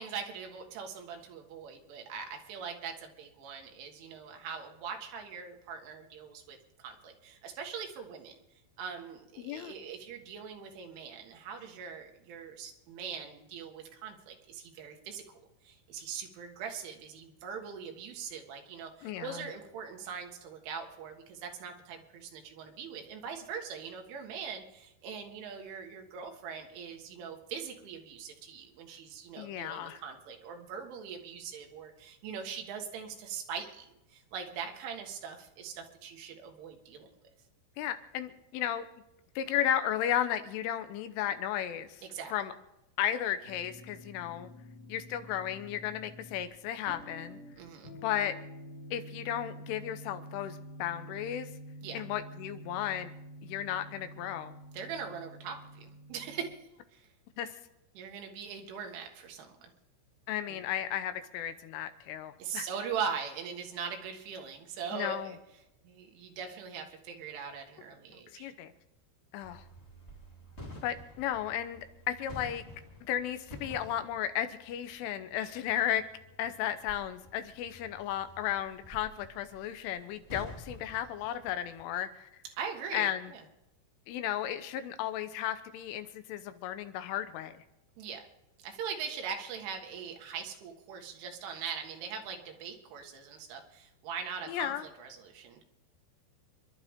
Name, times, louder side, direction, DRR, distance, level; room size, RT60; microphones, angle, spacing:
voice 1, 0.0-8.4 8.8-37.1 42.0-42.3 47.6-47.9 51.8-52.0 54.7-57.1 58.0-59.7 60.5-60.6 62.4-65.4 65.8-68.5 82.5-83.4 88.0-88.2 88.6-95.6, right 6 dB, 80° right, 3 dB, 4.1 m, -41 dB
voice 2, 9.4-9.7 19.0-19.4 29.4-30.0 37.8-38.9 39.4-42.0 42.3-42.5 43.0-44.5 44.9-47.4 48.0-48.4 48.9-51.5 51.9-53.1 53.4-54.6 57.4-57.6 60.3-62.7 64.9-65.3 68.4-68.7 69.3-69.6 70.8-72.6 73.1-76.0 76.4-82.3 82.9-83.3 84.1-87.6 94.5-94.9, left 11 dB, 85° left, 10 dB, 3.5 m, -34 dB
sound 1, 43.4-56.5, equal, 45° left, 3.6 m, -48 dB
sound 2, 69.4-81.8, equal, 20° left, 1.7 m, -50 dB
28.5 x 12.0 x 3.7 m, 0.91 s
omnidirectional pair, 5.6 m